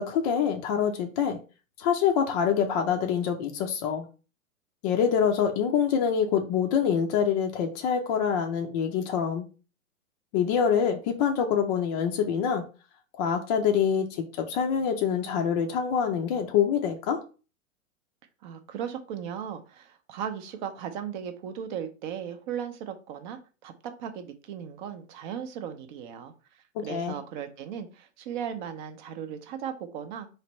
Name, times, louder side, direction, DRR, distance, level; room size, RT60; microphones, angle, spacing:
voice 1, 0.0-1.4 1.8-4.1 4.8-9.4 10.3-12.6 13.2-17.2 26.9-27.2, left 7 dB, 30° left, 0.5 m, -25 dB
voice 2, 18.4-30.3, right 8 dB, 35° right, 0.6 m, -37 dB
4.3 x 3.2 x 2.9 m
hypercardioid pair, 125°, 42 cm